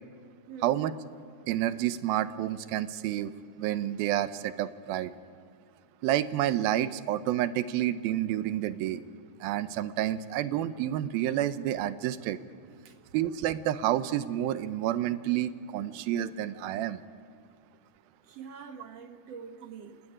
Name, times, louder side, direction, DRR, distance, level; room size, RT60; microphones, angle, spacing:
voice 1, 0.5-0.9 12.8-13.0 18.3-20.0, right 6 dB, 65° right, 7 dB, 1.7 m, -45 dB
voice 2, 1.5-3.3 3.6-5.1 6.0-9.0 9.4-12.4 13.1-17.0, right 12 dB, 80° right, 14 dB, 2.6 m, -29 dB
26.5 x 19.0 x 10.0 m, 2.2 s
omnidirectional pair, 4.2 m